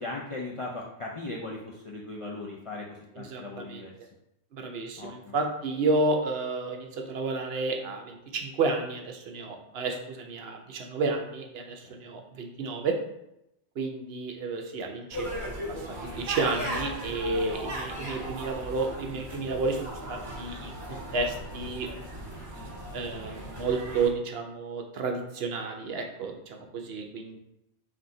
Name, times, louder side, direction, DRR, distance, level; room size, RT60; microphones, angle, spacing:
voice 1, 0.0-3.9 5.0-5.3 11.8-12.0, left 2 dB, 55° left, -2 dB, 0.3 m, -38 dB
voice 2, 3.1-3.8 4.5-13.0 13.8-22.2 22.9-27.4, right 3 dB, 70° right, 3 dB, 0.8 m, -31 dB
sound 1, 15.1-24.1, equal, 45° right, 1.7 m, -37 dB
4.3 x 2.6 x 3.7 m, 0.83 s
omnidirectional pair, 1.1 m